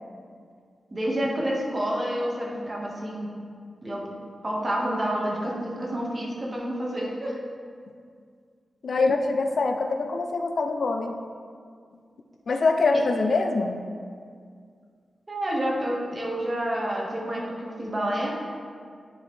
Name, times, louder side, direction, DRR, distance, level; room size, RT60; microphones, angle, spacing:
voice 1, 0.9-3.4 3.8-4.2 4.4-7.4 12.9-13.0 15.3-18.3, right 1 dB, 35° right, -3 dB, 1.5 m, -29 dB
voice 2, 8.8-11.2 12.5-13.8, left 3 dB, 65° left, 5 dB, 0.5 m, -24 dB
9.6 x 5.3 x 3.3 m, 2.2 s
wide cardioid pair, 80°, 0 cm